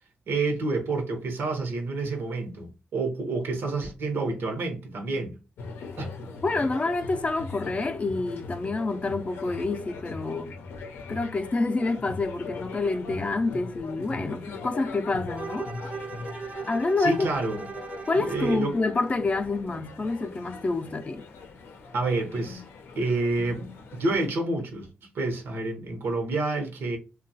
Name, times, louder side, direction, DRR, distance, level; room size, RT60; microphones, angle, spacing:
voice 1, 0.3-5.4 6.0-6.1 17.0-17.7 18.1-18.7 21.9-22.6 23.0-27.0, right 3 dB, 80° right, 0.8 m, -29 dB
sound 1, 5.6-24.3, left 4 dB, 90° left, 0.5 m, -40 dB
voice 2, 6.4-10.5 11.1-15.7 16.7-17.3 18.1-21.2, left 3 dB, 35° left, 0.4 m, -27 dB
Bowed string instrument, 15.3-18.7, right 5 dB, 35° right, 0.5 m, -38 dB
2.9 x 2.3 x 2.6 m
cardioid pair, 70°, 4 cm